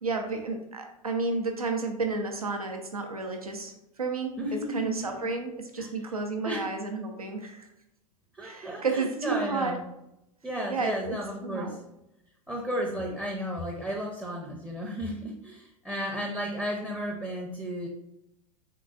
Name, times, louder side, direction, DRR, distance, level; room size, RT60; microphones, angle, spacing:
voice 1, 0.0-4.4 4.7-7.7 8.4-9.8 10.7-11.2 11.4-11.8, right 4 dB, 85° right, 4 dB, 0.5 m, -31 dB
voice 2, 4.4-5.3 5.8-5.9 6.4-6.7 8.3-9.8 10.4-11.8 12.5-17.9, equal, 5° right, -2 dB, 0.5 m, -33 dB
3.7 x 3.5 x 2.3 m, 0.86 s
figure-of-eight pair, 85°, 18 cm